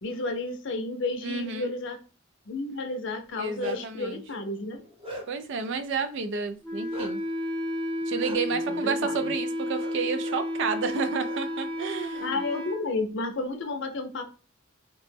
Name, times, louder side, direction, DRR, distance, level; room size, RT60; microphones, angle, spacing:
voice 1, 0.0-2.0 2.5-4.8 8.5-9.3 12.2-14.2, left 3 dB, 60° left, 0.6 m, -32 dB
voice 2, 1.2-1.7 3.4-4.2 5.3-7.2 8.1-12.4, right 5 dB, 60° right, 0.3 m, -31 dB
Bark, 3.2-4.0 4.5-5.5 6.9-7.1 8.2-8.4 9.8-9.9 10.2-10.4 11.2-11.4 11.8-12.6, equal, 25° right, 0.8 m, -40 dB
Wind instrument woodwind instrument, 6.6-12.8, left 1 dB, 5° left, 0.6 m, -32 dB
2.9 x 2.1 x 3.2 m
head